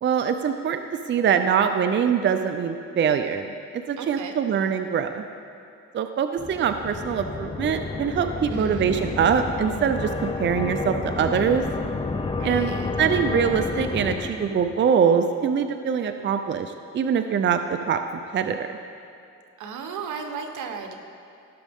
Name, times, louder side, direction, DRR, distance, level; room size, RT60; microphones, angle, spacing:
voice 1, 0.0-3.5 3.9-5.2 5.9-11.6 12.4-12.7 13.0-17.6 17.9-18.0 18.3-18.7, right 7 dB, 40° right, 8 dB, 0.5 m, -23 dB
voice 2, 4.0-4.4 8.5-8.8 12.3-12.9 19.6-20.9, right 6 dB, 80° right, 5 dB, 1.1 m, -35 dB
sound 1, 6.4-14.9, left 3 dB, 20° left, 0.6 m, -30 dB
17.5 x 6.1 x 3.6 m, 2.6 s
cardioid pair, 90°, 30 cm